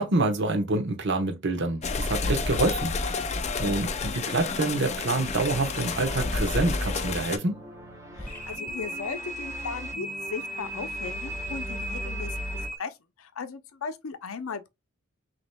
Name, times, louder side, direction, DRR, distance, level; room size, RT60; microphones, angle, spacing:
voice 1, 0.0-3.3 3.6-7.6, right 2 dB, 60° right, 1.0 m, -27 dB
sound 1, 1.8-7.4, left 4 dB, 35° left, 0.5 m, -30 dB
sound 2, 4.4-12.7, equal, 15° right, 1.2 m, -38 dB
voice 2, 8.2-14.7, left 5 dB, 85° left, 0.6 m, -37 dB
sound 3, 8.2-12.8, right 1 dB, 5° left, 1.8 m, -36 dB
6.0 x 2.9 x 2.2 m
head